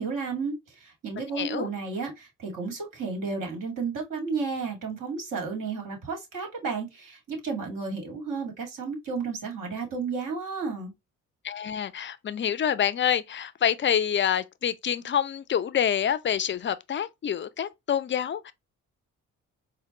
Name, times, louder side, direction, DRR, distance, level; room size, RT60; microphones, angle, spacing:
voice 1, 0.0-10.9, right 4 dB, 55° right, 1.9 m, -32 dB
voice 2, 1.3-1.7 11.4-18.5, left 9 dB, 30° left, 0.4 m, -27 dB
4.2 x 2.2 x 2.8 m
hypercardioid pair, 45°, 38 cm